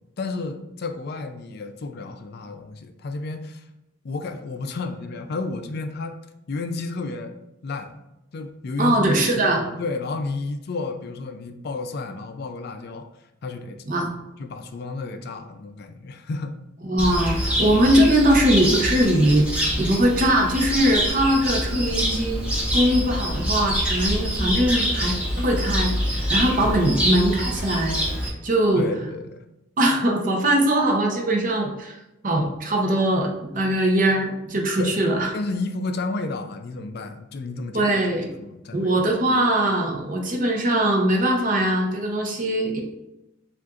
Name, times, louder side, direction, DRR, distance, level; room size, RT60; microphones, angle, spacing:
voice 1, 0.2-3.6 4.0-6.1 6.5-7.3 7.6-8.0 8.3-9.0 9.3-13.1 13.4-13.8 14.4-16.6 26.6-26.8 28.8-29.4 34.8-35.0 35.3-37.9 38.4-39.0, left 3 dB, 55° left, 7 dB, 0.4 m, -32 dB
voice 2, 8.8-9.6 13.9-14.1 16.8-19.5 19.8-28.0 28.4-28.8 29.8-32.0 32.2-35.3 37.7-38.3 38.7-42.8, right 1 dB, 40° right, 1 dB, 0.7 m, -21 dB
Cricket, 17.0-28.3, equal, 5° right, 1.0 m, -25 dB
7.3 x 2.5 x 2.4 m, 0.93 s
head